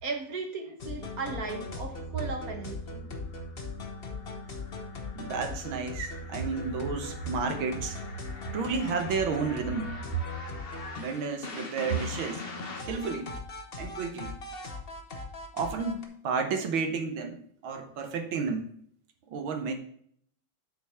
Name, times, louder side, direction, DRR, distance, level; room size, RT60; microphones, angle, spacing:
voice 1, 0.0-3.1, right 4 dB, 45° right, 4 dB, 1.5 m, -36 dB
sound 1, 0.8-16.1, left 3 dB, 35° left, 0.9 m, -39 dB
voice 2, 5.1-8.0 8.5-10.2 11.0-12.4 12.8-13.3 13.8-14.3 15.5-18.7 19.3-19.8, right 5 dB, 70° right, 6 dB, 1.8 m, -31 dB
8.1 x 4.6 x 5.6 m, 0.63 s
omnidirectional pair, 2.4 m